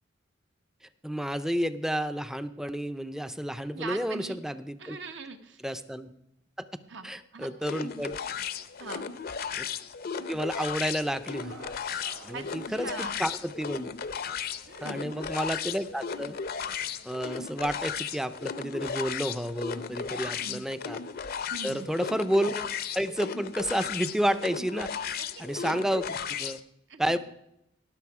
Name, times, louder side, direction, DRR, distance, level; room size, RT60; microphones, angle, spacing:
voice 1, 1.0-5.0 5.6-6.1 7.0-8.2 9.6-9.7 10.3-11.6 11.9-13.9 14.8-16.4 17.0-21.0 21.6-22.7 22.9-26.1 26.4-26.6 27.0-27.2, equal, 5° right, 12 dB, 0.5 m, -31 dB
voice 2, 3.7-4.4 4.8-5.6 6.9-7.5 8.8-9.2 12.3-13.2 14.7-15.1 20.2-20.7 21.5-21.9 25.3-25.9 26.9-27.2, right 4 dB, 70° right, 7 dB, 1.1 m, -42 dB
sound 1, 7.6-26.6, left 7 dB, 55° left, 0.6 m, -35 dB
sound 2, 10.4-17.4, right 3 dB, 90° right, 1.4 m, -56 dB
18.0 x 6.2 x 4.8 m, 0.80 s
head